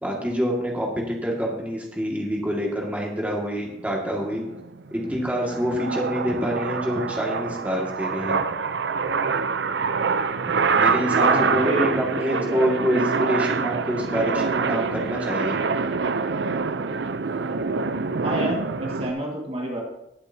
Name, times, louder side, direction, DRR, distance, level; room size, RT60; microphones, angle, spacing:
voice 1, 0.0-4.4 4.9-8.4 10.5-15.6, equal, 10° right, -2 dB, 2.0 m, -26 dB
sound 1, 3.8-19.1, right 5 dB, 80° right, 0.6 m, -25 dB
voice 2, 11.2-13.0 18.2-19.8, right 1 dB, 35° right, -1 dB, 1.9 m, -29 dB
19.5 x 8.1 x 2.8 m, 0.82 s
head